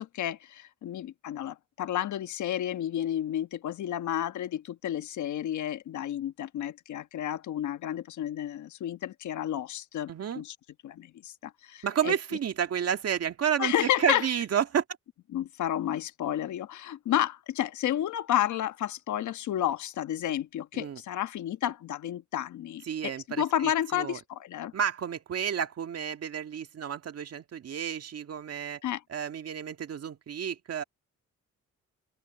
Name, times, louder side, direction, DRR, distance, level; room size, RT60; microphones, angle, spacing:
voice 1, 0.0-10.5 10.8-12.1 13.6-14.3 15.3-24.7 28.8-29.0, left 11 dB, 70° left, 1.4 m, -31 dB
voice 2, 10.1-10.4 11.8-14.8 20.7-21.0 22.9-24.2 24.7-28.8 29.1-30.8, right 8 dB, 55° right, 2.0 m, -31 dB
open air
cardioid pair, 90°, 30 cm